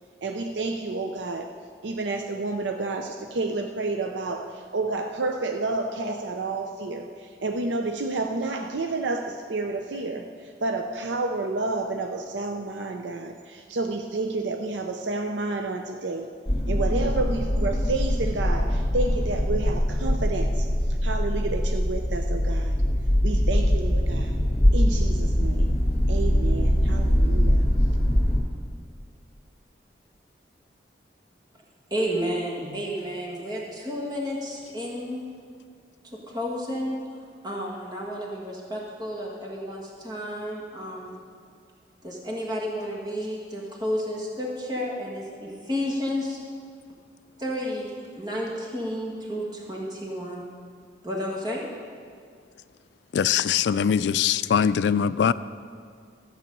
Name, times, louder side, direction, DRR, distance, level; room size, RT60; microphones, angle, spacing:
voice 1, 0.2-1.6 1.8-16.3 16.7-22.8 23.2-24.4 24.7-25.8 26.1-27.6, right 3 dB, 85° right, 5 dB, 0.6 m, -30 dB
sound 1, 16.5-28.4, equal, 35° left, 2.0 m, -22 dB
voice 2, 31.9-35.2 36.3-41.1 42.0-46.4 47.4-50.5 51.0-51.6 53.3-53.4, equal, 25° right, -2 dB, 1.6 m, -31 dB
voice 3, 53.1-55.3, left 8 dB, 75° left, 16 dB, 0.3 m, -22 dB
13.5 x 8.1 x 5.3 m, 2.2 s
head